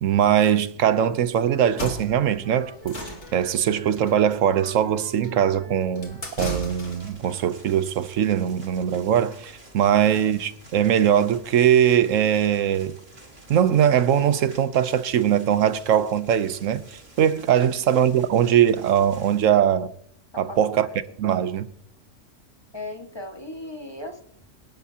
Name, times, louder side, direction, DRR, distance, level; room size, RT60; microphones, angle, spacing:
voice 1, 0.0-12.9 13.5-19.9 20.4-20.9 21.2-21.7, right 9 dB, 85° right, 1.1 m, -21 dB
Wind instrument woodwind instrument, 1.3-7.6, right 3 dB, 35° right, 2.5 m, -49 dB
sound 1, 1.6-7.2, equal, 60° left, 2.6 m, -36 dB
sound 2, 6.5-19.4, right 1 dB, 50° right, 3.4 m, -50 dB
voice 2, 20.3-20.9 22.7-24.2, left 1 dB, 20° left, 1.7 m, -38 dB
26.5 x 12.0 x 2.9 m
omnidirectional pair, 1.3 m